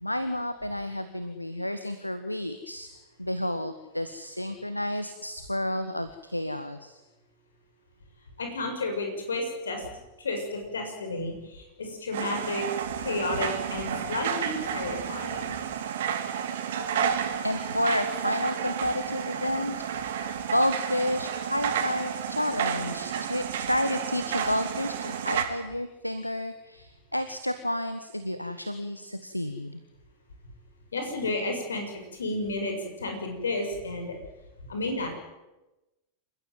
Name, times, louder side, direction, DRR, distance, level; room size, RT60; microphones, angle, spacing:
voice 1, 0.0-2.9 3.2-7.0 17.4-19.7 20.5-29.8, left 1 dB, 90° left, 10 dB, 1.4 m, -30 dB
voice 2, 8.4-9.9 10.2-12.7 13.0-15.5 30.9-34.2 34.7-35.1, left 2 dB, 70° left, 4 dB, 7.1 m, -32 dB
sound 1, 12.1-25.4, right 8 dB, 60° right, 3.1 m, -31 dB
28.5 x 15.5 x 9.3 m, 1.0 s
figure-of-eight pair, 90°, 0 cm